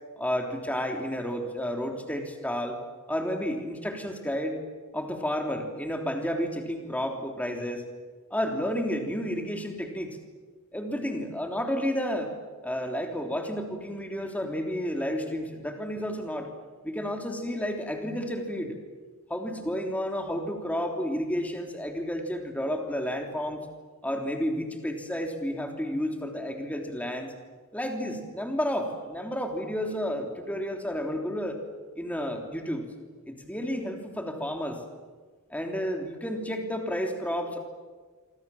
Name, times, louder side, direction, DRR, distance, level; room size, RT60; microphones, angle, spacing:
voice 1, 0.2-2.8 3.1-4.6 4.9-7.8 8.3-10.2 10.7-12.3 12.6-16.5 16.8-18.8 19.3-23.6 24.0-27.3 27.7-31.6 32.0-32.8 33.3-34.8 35.5-37.6, equal, 5° left, 3 dB, 3.3 m, -31 dB
27.0 x 26.0 x 7.3 m, 1.4 s
head